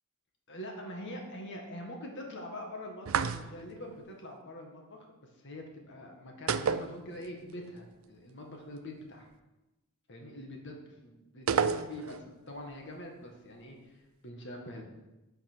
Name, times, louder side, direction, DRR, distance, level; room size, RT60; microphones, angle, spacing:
voice 1, 0.5-5.1 5.4-9.3 10.1-14.8, left 1 dB, 55° left, 1 dB, 1.9 m, -44 dB
sound 1, 3.1-3.8 6.5-7.5 7.8-7.9 11.5-12.3, right 6 dB, 70° right, 0.5 m, -30 dB
11.0 x 5.7 x 6.3 m, 1.0 s
head